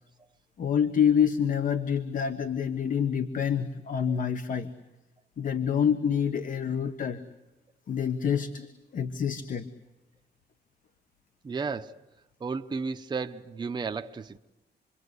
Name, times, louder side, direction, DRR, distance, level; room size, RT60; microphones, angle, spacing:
voice 1, 0.6-4.7 5.4-7.2 7.9-8.7 8.9-9.7, left 8 dB, 50° left, 1.3 m, -27 dB
voice 2, 11.4-12.0 12.4-14.4, right 4 dB, 25° right, 0.8 m, -33 dB
28.0 x 23.0 x 8.2 m
wide cardioid pair, 165°, 18 cm